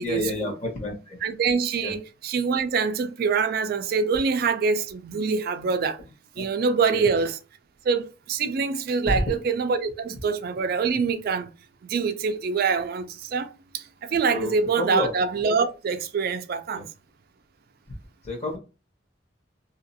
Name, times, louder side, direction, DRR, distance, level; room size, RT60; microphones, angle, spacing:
voice 1, 0.0-1.2 1.8-2.0 6.4-6.5 6.9-7.1 9.1-9.2 14.3-15.1 16.7-16.8 18.2-18.6, left 1 dB, 35° left, 1.1 m, -30 dB
voice 2, 1.2-6.0 6.4-7.4 7.8-11.5 11.8-16.9, right 5 dB, 55° right, 0.3 m, -25 dB
2.8 x 2.4 x 2.6 m
head